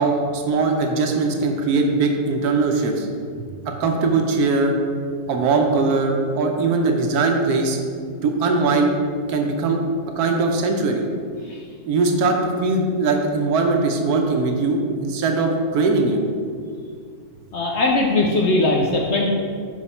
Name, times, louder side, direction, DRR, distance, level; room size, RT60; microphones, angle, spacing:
voice 1, 0.0-3.1 3.8-4.7 5.3-7.8 8.2-8.9 9.3-9.8 10.2-11.0 11.9-16.2, right 3 dB, 75° right, 3 dB, 1.2 m, -20 dB
voice 2, 17.5-19.3, left 2 dB, 65° left, -1 dB, 0.7 m, -19 dB
5.1 x 4.9 x 4.2 m, 2.1 s
omnidirectional pair, 1.6 m